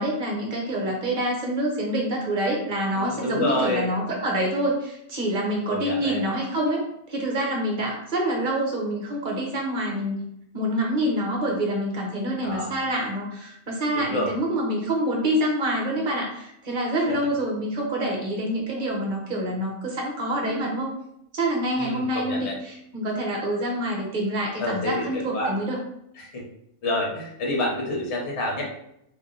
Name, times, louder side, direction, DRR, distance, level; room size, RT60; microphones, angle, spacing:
voice 1, 0.0-6.8 7.1-10.2 10.5-20.9 21.3-25.8, right 1 dB, 40° right, -1 dB, 0.8 m, -26 dB
voice 2, 2.9-3.9 5.7-6.2 12.4-12.8 13.9-14.3 21.8-22.6 24.6-25.5 26.2-26.4 26.8-28.6, left 1 dB, 50° left, -1 dB, 1.1 m, -28 dB
2.8 x 2.6 x 3.8 m, 0.77 s
omnidirectional pair, 1.6 m